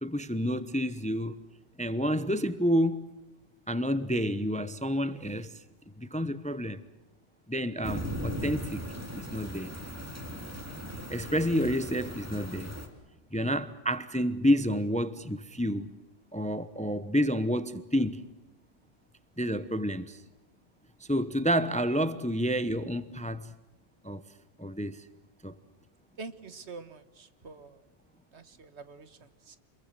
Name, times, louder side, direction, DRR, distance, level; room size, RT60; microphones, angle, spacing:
voice 1, 0.0-1.4 1.8-3.0 3.7-5.5 6.0-6.8 7.5-8.8 9.2-9.7 11.1-12.7 13.3-15.9 16.3-18.2 19.4-20.2 21.1-23.5 24.0-24.2 24.6-25.1 25.4-25.5, equal, 5° left, 0.8 m, -29 dB
sound 1, 7.8-12.9, equal, 10° right, 3.0 m, -38 dB
voice 2, 26.2-27.8 28.3-29.6, right 4 dB, 65° right, 1.5 m, -46 dB
27.5 x 22.5 x 7.8 m
omnidirectional pair, 1.2 m